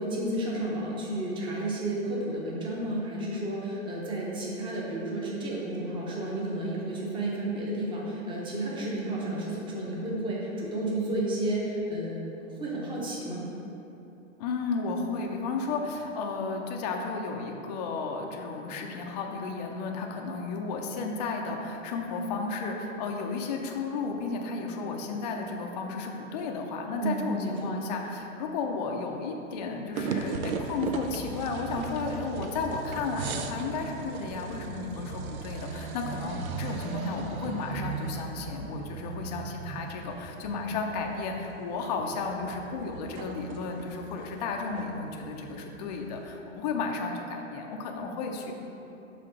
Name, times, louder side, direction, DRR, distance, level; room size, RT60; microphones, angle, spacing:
voice 1, 0.0-12.2 12.6-13.4 27.0-27.7, right 1 dB, 10° right, -3 dB, 0.7 m, -32 dB
voice 2, 14.4-48.5, left 4 dB, 35° left, 2 dB, 0.5 m, -33 dB
sound 1, 30.0-46.3, right 5 dB, 85° right, 0.6 m, -38 dB
5.9 x 3.7 x 4.9 m, 3.0 s
hypercardioid pair, 135°, 41 cm